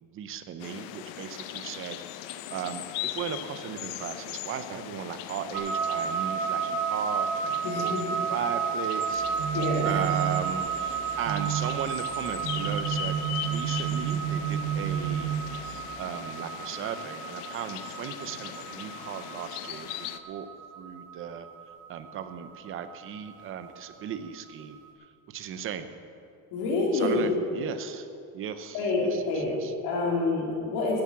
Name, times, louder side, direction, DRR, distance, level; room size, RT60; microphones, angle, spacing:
voice 1, 0.0-9.6 9.8-13.2 13.4-15.4 15.6-20.5 20.8-21.5 21.9-24.8 25.3-25.9 26.9-28.1 28.3-29.7, right 8 dB, 30° right, 10 dB, 0.6 m, -37 dB
sound 1, 0.6-20.2, left 13 dB, 85° left, 0.8 m, -40 dB
sound 2, 5.5-24.6, right 7 dB, 85° right, 1.8 m, -33 dB
voice 2, 7.6-8.1 9.5-9.9 26.5-27.2 28.7-29.5 29.8-31.0, left 3 dB, 55° left, -3 dB, 3.4 m, -27 dB
sound 3, 9.1-16.0, right 9 dB, 60° right, 3.9 m, -32 dB
12.5 x 8.4 x 7.4 m, 2.5 s
cardioid pair, 165°, 45 cm